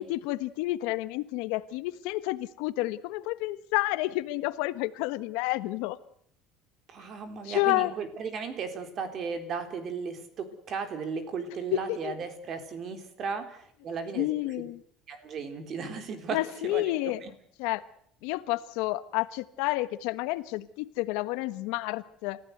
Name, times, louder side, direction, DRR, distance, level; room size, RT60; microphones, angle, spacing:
voice 1, 0.0-6.0 7.4-7.9 11.7-12.1 14.1-14.8 16.3-17.2 17.6-17.8 18.2-22.4, left 18 dB, 80° left, 14 dB, 1.3 m, -30 dB
voice 2, 6.9-14.3 14.6-14.7 15.1-17.3, right 5 dB, 35° right, 9 dB, 3.6 m, -36 dB
29.0 x 15.5 x 8.0 m, 0.66 s
cardioid pair, 160°, 0 cm